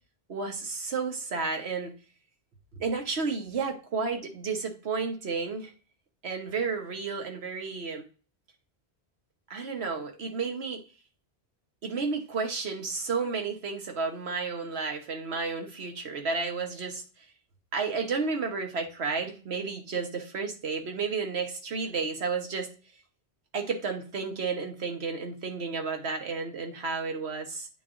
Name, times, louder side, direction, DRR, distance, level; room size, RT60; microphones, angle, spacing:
voice 1, 0.3-1.9 2.7-5.7 6.2-8.1 9.5-10.8 11.8-17.0 17.7-22.7 23.5-27.7, right 4 dB, 75° right, 4 dB, 1.3 m, -32 dB
9.0 x 4.1 x 2.5 m, 0.36 s
omnidirectional pair, 1.1 m